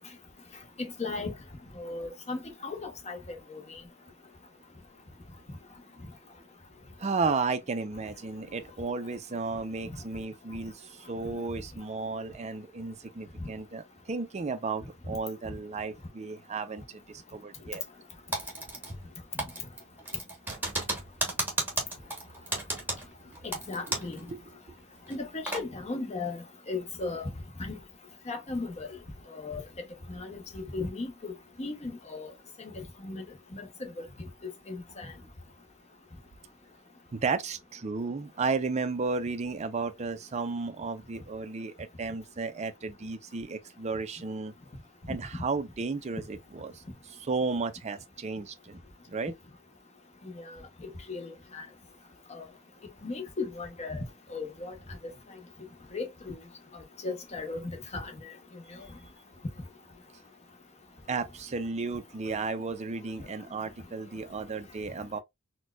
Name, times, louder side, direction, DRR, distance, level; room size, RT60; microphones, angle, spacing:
voice 1, 0.8-1.3 1.8-3.2 3.5-3.6 23.4-24.2 25.1-27.3 27.6-27.8 28.3-28.9 29.3-29.6 30.1-32.3 32.6-33.2 33.5-33.7 34.7-35.1 50.4-50.6 50.8-51.7 52.3-52.4 53.0-54.0 54.3-54.7 55.9-56.4 57.0-57.6 57.9-58.1, left 3 dB, 30° left, 0.8 m, -36 dB
voice 2, 7.0-17.8 24.1-24.4 37.1-44.5 45.1-48.8 49.1-49.3 61.1-65.2, right 4 dB, 30° right, 0.4 m, -33 dB
Typing, 18.3-19.1 19.4-24.2 24.5-24.6 25.1-25.6, right 2 dB, 10° right, 1.0 m, -33 dB
4.2 x 2.2 x 2.3 m
head